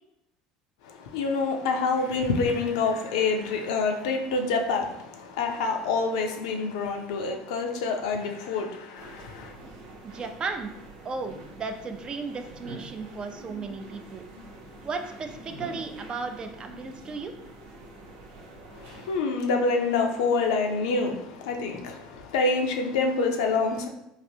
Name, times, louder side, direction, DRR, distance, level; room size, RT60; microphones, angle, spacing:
voice 1, 0.8-9.5 18.7-23.9, left 4 dB, 80° left, 0.5 m, -27 dB
sound 1, 8.9-19.2, right 1 dB, 70° right, 0.8 m, -45 dB
voice 2, 10.0-10.7 11.0-14.2 14.8-17.3, right 4 dB, 30° right, 0.4 m, -35 dB
3.2 x 2.5 x 2.7 m
supercardioid pair, 95°, 3 cm